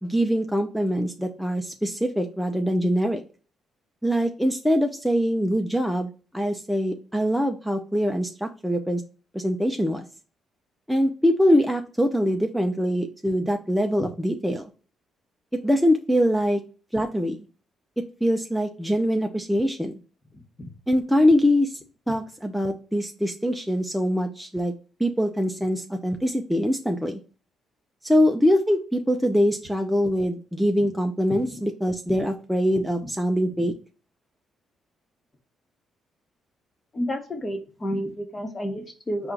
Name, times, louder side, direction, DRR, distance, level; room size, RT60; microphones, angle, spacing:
voice 1, 0.0-3.2 4.0-9.0 9.3-10.0 10.9-14.7 15.6-16.6 16.9-17.4 18.2-19.9 20.9-21.7 22.1-24.7 25.0-27.2 28.0-33.7, equal, ahead, 3 dB, 0.4 m, -23 dB
voice 2, 20.3-20.7 31.5-31.6 32.1-32.2 36.9-39.3, equal, 30° left, 4 dB, 1.1 m, -31 dB
4.4 x 2.4 x 3.7 m, 0.37 s
cardioid pair, 90°, 0 cm